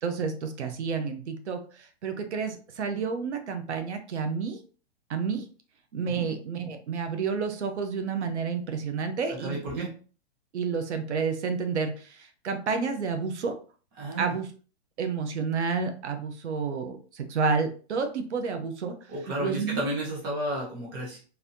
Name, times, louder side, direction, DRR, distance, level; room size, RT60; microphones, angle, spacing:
voice 1, 0.0-4.6 5.1-5.5 5.9-9.9 10.5-13.5 14.2-14.5 15.0-19.0 19.4-19.8, right 5 dB, 90° right, 7 dB, 0.8 m, -30 dB
voice 2, 9.4-9.9 14.0-14.3 19.1-21.2, right 1 dB, 20° right, -3 dB, 0.9 m, -32 dB
4.0 x 2.7 x 2.6 m, 0.38 s
hypercardioid pair, 175°, 33 cm